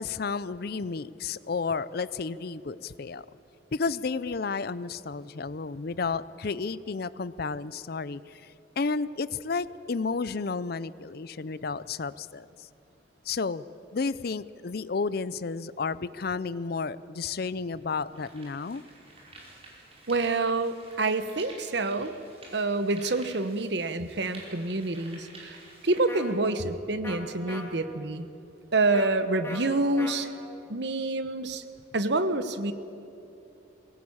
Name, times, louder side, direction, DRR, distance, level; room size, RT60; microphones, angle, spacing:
voice 1, 0.0-3.3 3.7-12.7 13.3-13.6 13.9-18.8, left 4 dB, 50° left, 17 dB, 0.5 m, -32 dB
sound 1, 17.8-26.3, right 2 dB, 30° right, 5.2 m, -50 dB
voice 2, 20.1-22.1 22.5-25.6 25.8-28.3 28.7-30.3 30.7-31.6 31.9-32.7, right 2 dB, 55° right, 11 dB, 1.1 m, -27 dB
sound 2, 26.1-26.2 27.0-27.2 27.5-27.6 28.9-29.1 29.4-29.6 30.0-30.1, left 2 dB, 15° left, 2.3 m, -38 dB
23.0 x 18.0 x 8.7 m, 2.9 s
head